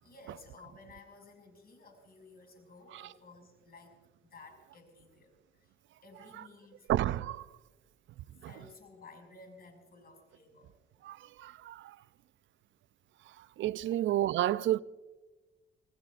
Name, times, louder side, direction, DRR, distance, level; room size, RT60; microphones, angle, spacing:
voice 1, 0.0-4.0 4.3-6.9 8.2-10.7 13.8-13.9, left 3 dB, 50° left, 6.1 m, -55 dB
voice 2, 6.9-7.5 8.4-8.5 11.0-12.0 13.6-14.8, right 13 dB, 70° right, 0.5 m, -31 dB
27.0 x 19.0 x 2.5 m
cardioid pair, 90°, 20 cm